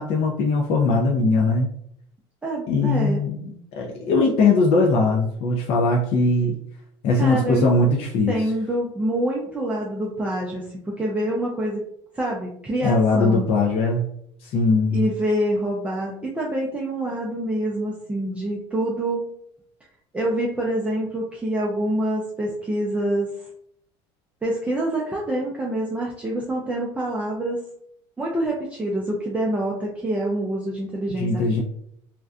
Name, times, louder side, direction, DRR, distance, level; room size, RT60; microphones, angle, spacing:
voice 1, 0.0-1.7 2.7-3.4 3.8-6.6 7.0-8.3 12.8-14.0 14.4-15.0 31.2-31.6, left 3 dB, 50° left, -1 dB, 0.4 m, -20 dB
voice 2, 2.4-3.2 7.1-7.7 8.3-11.8 12.1-13.5 14.9-19.2 20.1-23.3 24.4-27.6 28.2-31.6, right 1 dB, 10° right, -3 dB, 0.4 m, -26 dB
2.5 x 2.2 x 2.4 m, 0.71 s
supercardioid pair, 110°, 13 cm